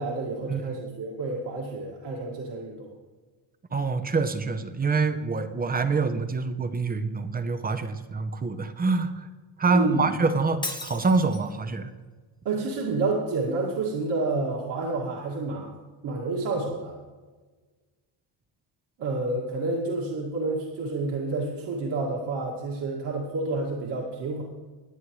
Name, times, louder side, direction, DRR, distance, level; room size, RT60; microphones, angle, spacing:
voice 1, 0.0-2.9 9.7-10.1 12.4-15.7 16.0-17.0 19.0-24.4, right 3 dB, 55° right, -3 dB, 2.2 m, -29 dB
voice 2, 3.7-9.3 9.6-11.9, right 4 dB, 20° right, 10 dB, 0.7 m, -26 dB
Shatter, 10.6-11.6, left 2 dB, 10° left, 1.1 m, -36 dB
21.0 x 8.2 x 3.2 m, 1.4 s
cardioid pair, 140°, 49 cm